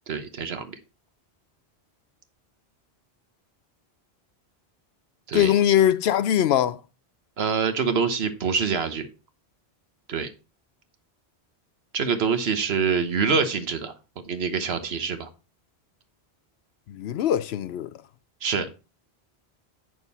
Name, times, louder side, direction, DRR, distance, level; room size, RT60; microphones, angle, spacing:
voice 1, 0.1-0.7 5.3-5.5 7.4-9.1 10.1-10.3 11.9-13.9 14.3-15.3 18.4-18.7, right 5 dB, 70° right, 1.2 m, -25 dB
voice 2, 5.3-6.8 16.9-17.9, left 11 dB, 75° left, 0.8 m, -21 dB
8.9 x 6.2 x 4.1 m
omnidirectional pair, 1.1 m